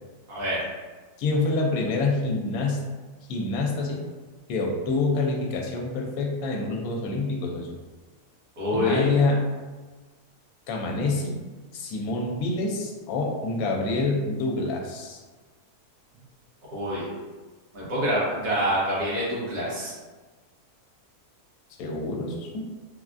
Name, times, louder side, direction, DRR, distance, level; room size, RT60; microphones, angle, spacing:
voice 1, 0.3-0.6 8.6-9.0 16.7-17.1 17.7-19.9, equal, 80° right, -8 dB, 1.5 m, -26 dB
voice 2, 1.2-2.8 3.3-4.0 4.5-7.7 8.7-9.4 10.7-11.4 11.7-15.2 21.8-22.6, left 3 dB, 75° left, -1 dB, 1.0 m, -26 dB
3.3 x 2.3 x 2.4 m, 1.3 s
omnidirectional pair, 1.7 m